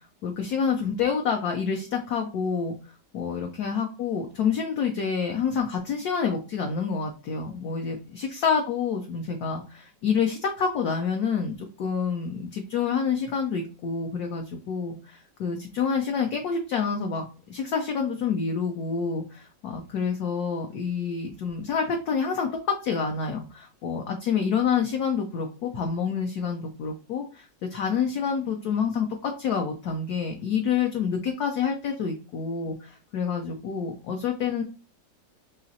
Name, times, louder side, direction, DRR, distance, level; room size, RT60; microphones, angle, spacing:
voice 1, 0.0-2.7 3.1-22.5 22.8-34.6, left 6 dB, 70° left, 2 dB, 1.0 m, -28 dB
4.0 x 2.9 x 2.7 m, 0.34 s
omnidirectional pair, 2.0 m